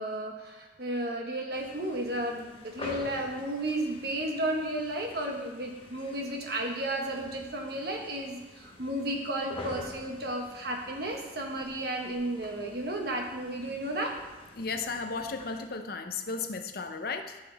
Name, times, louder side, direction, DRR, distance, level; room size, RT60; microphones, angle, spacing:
voice 1, 0.0-14.1, right 1 dB, 55° right, 1 dB, 1.4 m, -33 dB
sound 1, 1.5-15.7, left 2 dB, 30° left, 1.1 m, -47 dB
voice 2, 14.5-17.4, left 4 dB, 50° left, 7 dB, 0.7 m, -35 dB
13.5 x 6.2 x 3.5 m, 1.2 s
head